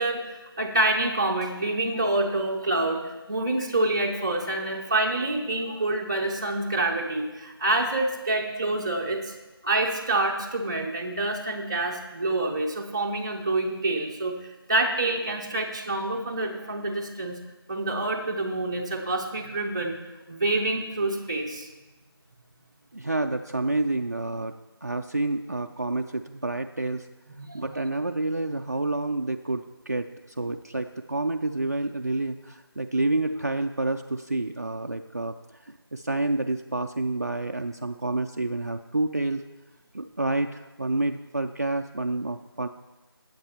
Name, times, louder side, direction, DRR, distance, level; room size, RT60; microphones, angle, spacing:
voice 1, 0.0-9.3 9.6-17.4 17.7-20.0 20.3-21.7 27.4-27.8, right 2 dB, 10° right, -3 dB, 0.7 m, -27 dB
voice 2, 22.9-24.6 24.8-27.1 27.5-35.3 35.6-39.4 39.9-42.7, right 2 dB, 40° right, 5 dB, 0.4 m, -29 dB
19.0 x 7.9 x 2.9 m, 1.1 s
figure-of-eight pair, 170°, 13 cm